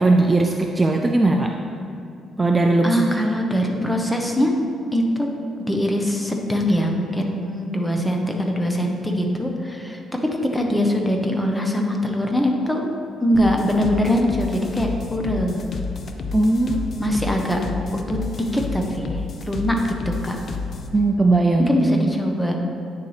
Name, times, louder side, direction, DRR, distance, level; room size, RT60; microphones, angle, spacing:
voice 1, 0.0-1.5 2.4-3.0 16.3-16.8 20.9-21.7 22.0-22.1, right 2 dB, 20° right, 3 dB, 0.5 m, -18 dB
voice 2, 2.8-4.5 4.9-5.3 5.7-12.9 13.2-15.6 17.0-17.6 17.9-18.2 18.5-20.4 21.6-22.6, equal, 10° left, 1 dB, 1.0 m, -22 dB
sound 1, 13.3-21.0, left 4 dB, 50° left, 0.7 m, -31 dB
9.2 x 6.7 x 3.3 m, 2.7 s
cardioid pair, 90°, 0 cm